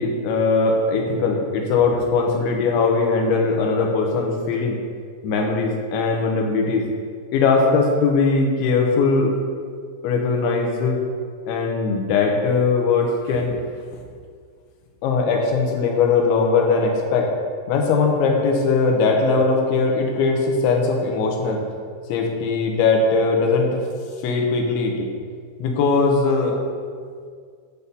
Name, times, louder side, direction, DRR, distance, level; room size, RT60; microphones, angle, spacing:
voice 1, 0.0-4.8 5.2-6.9 7.3-9.3 10.0-11.0 11.5-13.6 15.0-17.3 17.7-21.6 22.1-23.8 24.2-25.1 25.6-26.6, left 4 dB, 80° left, 1 dB, 3.2 m, -20 dB
8.4 x 4.1 x 6.8 m, 2.1 s
omnidirectional pair, 5.4 m